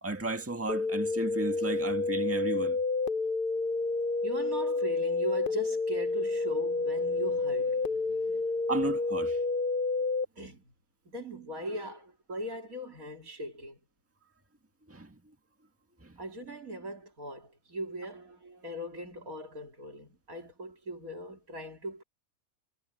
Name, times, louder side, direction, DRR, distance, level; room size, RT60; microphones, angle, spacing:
voice 1, 0.0-2.8 8.7-9.4 14.9-15.2 16.0-16.1, right 2 dB, 10° right, 1.8 m, -33 dB
sound 1, 0.7-10.2, left 3 dB, 45° left, 0.9 m, -29 dB
voice 2, 4.2-8.4 10.4-10.7 11.1-13.8 16.2-22.0, equal, 80° right, 4.1 m, -39 dB
omnidirectional pair, 1.4 m